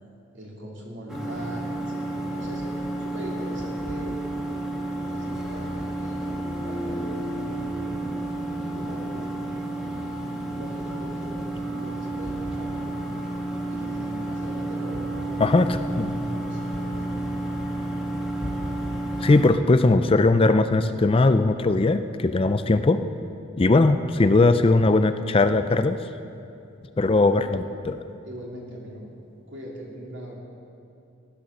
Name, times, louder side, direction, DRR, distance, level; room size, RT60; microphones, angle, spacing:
voice 1, 0.3-2.6 3.0-4.4 4.8-7.9 8.5-9.5 10.3-12.9 13.7-15.4 15.9-16.9 27.3-27.6 28.2-29.1 29.5-30.4, equal, 60° right, -3 dB, 3.0 m, -41 dB
sound 1, 1.1-19.5, right 1 dB, 5° right, 1.6 m, -31 dB
voice 2, 15.4-16.2 19.2-23.0 23.6-26.0 27.0-27.9, left 2 dB, 25° left, 10 dB, 0.4 m, -19 dB
15.0 x 11.5 x 6.6 m, 2.6 s
head